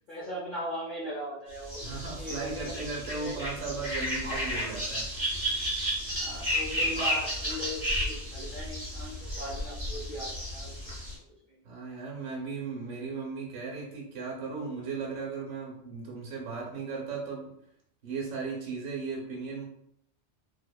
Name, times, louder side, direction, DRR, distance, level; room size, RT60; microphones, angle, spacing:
voice 1, 0.1-2.7 3.1-3.5 6.1-11.0, equal, 55° left, -6 dB, 0.6 m, -39 dB
sound 1, 1.6-11.1, equal, 10° right, 0.9 m, -33 dB
voice 2, 1.8-5.1 11.6-17.6 18.0-19.7, right 4 dB, 65° right, -2 dB, 0.9 m, -36 dB
2.8 x 2.0 x 2.2 m, 0.72 s
omnidirectional pair, 1.2 m